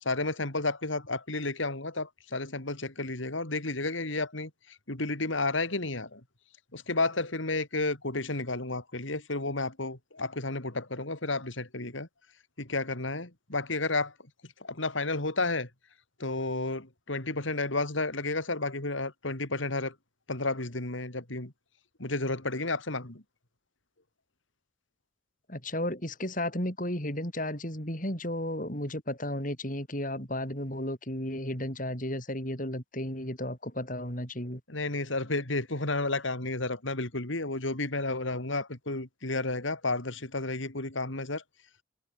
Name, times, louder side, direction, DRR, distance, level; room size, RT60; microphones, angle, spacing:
voice 1, 0.0-4.5 4.9-6.2 6.7-12.1 12.6-14.1 14.6-15.7 16.2-19.9 20.3-21.5 22.0-23.2 34.7-41.4, left 2 dB, 75° left, 3.2 m, -31 dB
voice 2, 25.5-34.6, left 1 dB, 40° left, 7.4 m, -33 dB
head